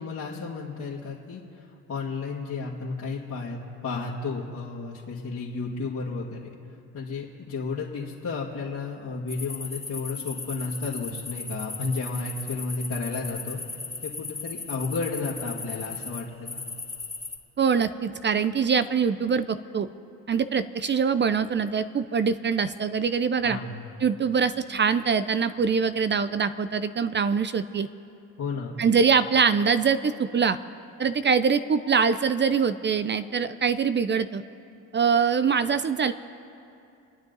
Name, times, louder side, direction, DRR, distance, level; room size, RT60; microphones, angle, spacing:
voice 1, 0.0-6.5 6.9-16.6 23.4-23.8 28.4-28.8, left 4 dB, 40° left, -7 dB, 2.3 m, -33 dB
sound 1, 9.3-17.4, left 3 dB, 15° left, 2.4 m, -36 dB
voice 2, 17.6-19.9 20.3-23.6 24.0-27.9 28.8-30.6 31.0-34.4 34.9-36.1, right 6 dB, 25° right, 13 dB, 0.6 m, -23 dB
28.0 x 9.6 x 4.1 m, 2.6 s
hypercardioid pair, 60°, 42 cm